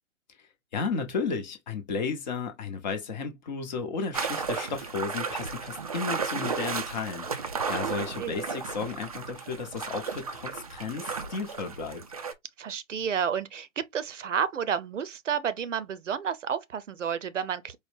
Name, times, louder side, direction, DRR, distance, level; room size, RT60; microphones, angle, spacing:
voice 1, 0.7-12.0, left 5 dB, 35° left, 0.9 m, -33 dB
sound 1, 4.1-12.3, right 5 dB, 30° right, 0.4 m, -34 dB
voice 2, 12.6-17.8, right 7 dB, 65° right, 0.7 m, -31 dB
4.6 x 2.1 x 3.3 m
figure-of-eight pair, 130°, 40 cm